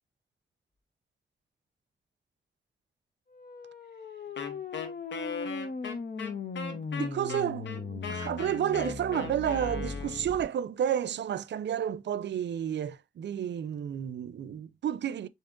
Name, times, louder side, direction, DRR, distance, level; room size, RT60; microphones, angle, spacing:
sound 1, 3.3-10.4, left 4 dB, 55° left, 0.9 m, -38 dB
Wind instrument woodwind instrument, 4.4-10.4, left 6 dB, 85° left, 1.0 m, -39 dB
voice 1, 7.0-15.3, right 9 dB, 75° right, 0.5 m, -31 dB
6.8 x 2.9 x 2.3 m
cardioid pair, 50°, 18 cm